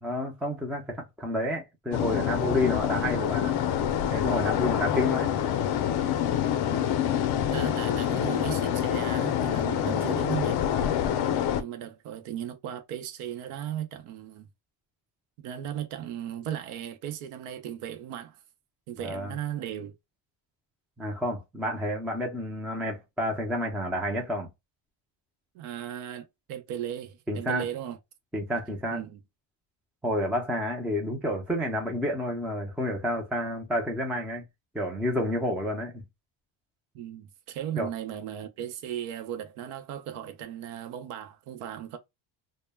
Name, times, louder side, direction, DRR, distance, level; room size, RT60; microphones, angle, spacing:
voice 1, 0.0-3.6 4.1-5.3 9.6-10.1 19.0-19.4 21.0-24.5 27.3-27.7 28.3-29.0 30.0-34.4 34.7-36.0 37.8-37.9, left 1 dB, 5° right, 0.3 m, -30 dB
sound 1, 1.9-11.6, left 10 dB, 55° left, 0.5 m, -26 dB
voice 2, 6.6-6.9 7.5-10.6 11.6-14.5 15.4-18.4 18.9-19.9 25.5-28.0 28.9-29.2 36.9-42.0, right 10 dB, 85° right, 0.6 m, -36 dB
2.1 x 2.1 x 3.3 m
cardioid pair, 135°, 49 cm